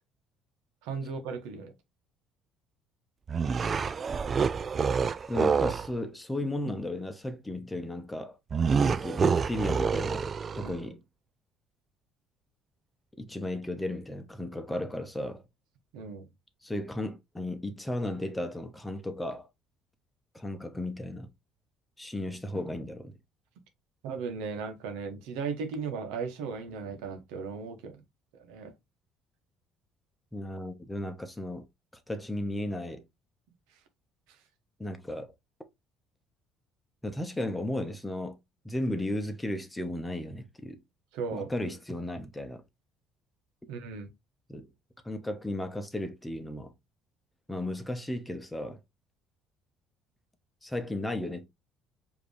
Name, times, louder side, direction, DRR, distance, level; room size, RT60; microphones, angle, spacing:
voice 1, 0.8-1.7 10.6-10.7 15.9-16.3 24.0-28.0 28.3-28.7 41.1-41.5 43.7-44.1, right 5 dB, 85° right, 1.0 m, -36 dB
sound 1, 3.3-5.9 8.5-10.8, right 5 dB, 35° right, 0.4 m, -27 dB
voice 2, 5.3-8.4 8.8-10.3 10.5-11.0 13.2-15.4 16.6-19.5 20.3-21.3 22.0-23.1 30.3-31.6 32.1-33.0 34.8-35.3 37.0-38.4 38.6-40.8 41.3-42.6 44.5-44.7 45.0-46.7 47.5-48.8 50.6-51.5, left 1 dB, 10° left, 1.0 m, -34 dB
5.0 x 2.9 x 3.2 m
supercardioid pair, 90°, 0 cm